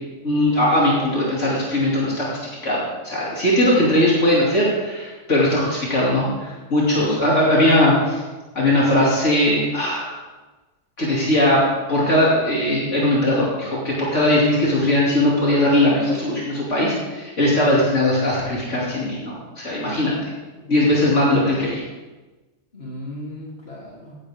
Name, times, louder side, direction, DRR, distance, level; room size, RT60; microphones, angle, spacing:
voice 1, 0.2-2.3 2.6-8.2 8.5-10.2 11.0-11.6 11.9-20.3 20.7-21.8, left 1 dB, 70° left, -5 dB, 3.2 m, -19 dB
voice 2, 6.9-7.3 20.6-20.8 22.7-24.2, left 1 dB, 50° left, -4 dB, 3.4 m, -37 dB
16.0 x 12.0 x 3.6 m, 1.2 s
omnidirectional pair, 1.3 m